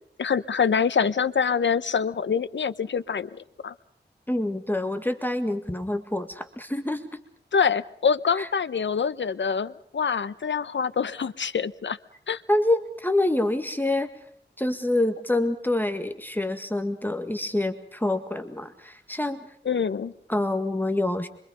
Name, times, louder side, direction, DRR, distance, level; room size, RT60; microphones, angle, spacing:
voice 1, 0.2-3.7 7.5-12.0 12.3-12.4 19.6-20.1, left 6 dB, 85° left, 14 dB, 1.0 m, -25 dB
voice 2, 4.3-7.1 8.4-8.5 12.5-14.1 14.6-19.5 20.3-21.3, left 1 dB, 10° left, 7 dB, 1.9 m, -26 dB
26.5 x 24.5 x 5.2 m, 0.63 s
wide cardioid pair, 90°, 18 cm